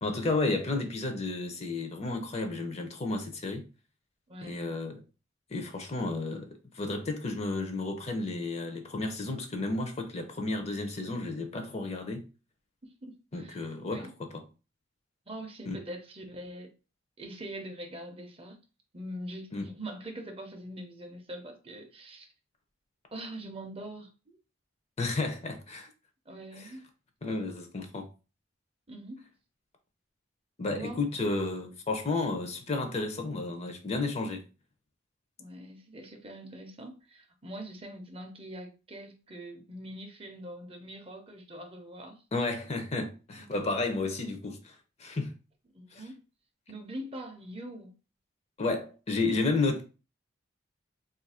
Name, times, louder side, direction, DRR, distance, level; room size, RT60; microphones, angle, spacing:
voice 1, 0.0-3.6 4.5-5.0 5.5-6.5 6.7-12.2 13.3-14.0 15.7-15.8 19.5-19.7 25.0-25.9 26.6-26.7 27.2-28.1 30.6-34.4 42.3-44.7 45.0-45.3 45.9-46.0 48.6-49.8, left 3 dB, 30° left, 0.5 m, -32 dB
voice 2, 4.3-4.7 12.8-14.1 15.3-16.7 17.2-18.6 18.9-22.3 23.1-24.4 26.3-26.9 28.9-29.3 30.7-31.1 35.4-42.2 43.4-43.5 45.7-46.2 46.7-47.9 49.3-49.6, right 1 dB, 30° right, 0.5 m, -43 dB
2.6 x 2.5 x 4.1 m
head